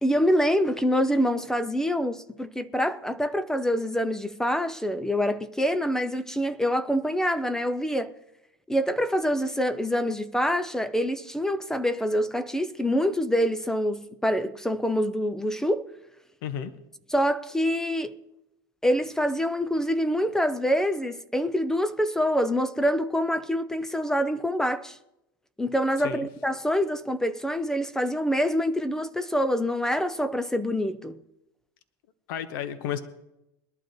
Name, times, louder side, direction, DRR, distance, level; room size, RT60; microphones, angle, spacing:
voice 1, 0.0-8.1 8.7-15.9 17.1-18.1 18.8-25.0 25.6-31.2, equal, 5° left, 0.5 m, -26 dB
voice 2, 16.4-16.7 26.0-26.3 32.3-33.0, left 9 dB, 65° left, 1.3 m, -32 dB
21.5 x 11.5 x 3.1 m
supercardioid pair, 125°, 13 cm